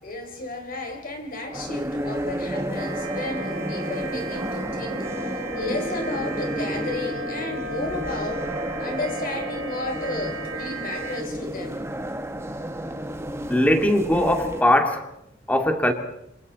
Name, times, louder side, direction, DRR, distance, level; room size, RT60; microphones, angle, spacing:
voice 1, 0.0-8.5 8.8-11.9, left 2 dB, 45° left, 3 dB, 4.2 m, -33 dB
sound 1, 1.5-14.6, right 1 dB, 15° right, 1.4 m, -31 dB
sound 2, 2.7-11.2, right 2 dB, 80° right, 2.8 m, -35 dB
voice 2, 13.5-15.1 15.5-15.9, left 1 dB, 10° left, 5 dB, 2.4 m, -20 dB
27.5 x 25.5 x 4.2 m, 0.76 s
head